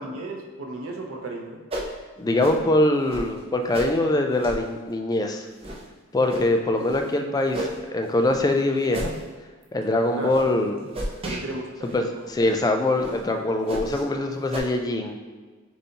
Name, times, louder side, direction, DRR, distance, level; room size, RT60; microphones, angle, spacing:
voice 1, 0.0-1.6 10.2-10.4 11.2-12.2, right 2 dB, 70° right, 1 dB, 0.6 m, -34 dB
sound 1, 1.7-1.9 2.4-2.6 3.1-3.3 3.7-3.9 4.4-4.6 5.1-5.2 5.6-5.8 6.3-6.5 6.8-7.0 7.5-7.8 8.3-8.5 8.9-9.2 9.6-9.8 10.3-10.4 10.9-11.4 11.9-12.0 12.4-12.5 13.0-13.2 13.7-14.0 14.5-14.6, right 1 dB, 25° right, 0.6 m, -32 dB
voice 2, 2.2-5.4 6.1-9.1 9.7-10.8 11.8-15.2, left 1 dB, 20° left, 4 dB, 0.3 m, -23 dB
6.8 x 2.7 x 2.8 m, 1.4 s
head